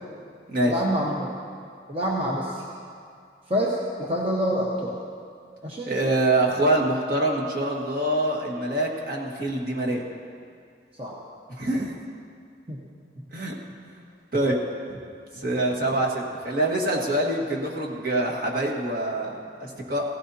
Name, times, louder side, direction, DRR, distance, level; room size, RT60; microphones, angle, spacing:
voice 1, 0.7-1.3 1.9-2.6 3.5-5.0 5.6-5.9 11.0-11.1 12.7-12.8, equal, 30° right, -4 dB, 1.1 m, -26 dB
voice 2, 5.9-10.0 11.5-12.0 13.3-13.5 14.3-14.6 15.3-20.0, right 1 dB, 50° right, -2 dB, 1.7 m, -25 dB
17.0 x 16.0 x 2.8 m, 2.2 s
head